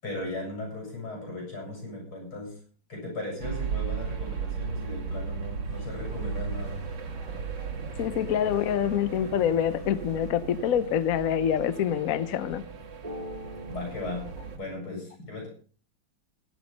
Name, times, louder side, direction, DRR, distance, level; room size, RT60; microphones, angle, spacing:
voice 1, 0.0-2.6 2.9-6.9 13.7-15.5, left 2 dB, 75° left, 8.9 m, -37 dB
sound 1, 3.4-14.6, right 6 dB, 60° right, 2.2 m, -36 dB
sound 2, 5.6-12.0, equal, 30° left, 6.6 m, -55 dB
voice 2, 8.0-12.6, left 9 dB, 55° left, 1.0 m, -26 dB
sound 3, 13.0-14.5, equal, 20° right, 2.3 m, -43 dB
16.5 x 11.0 x 5.3 m
omnidirectional pair, 2.3 m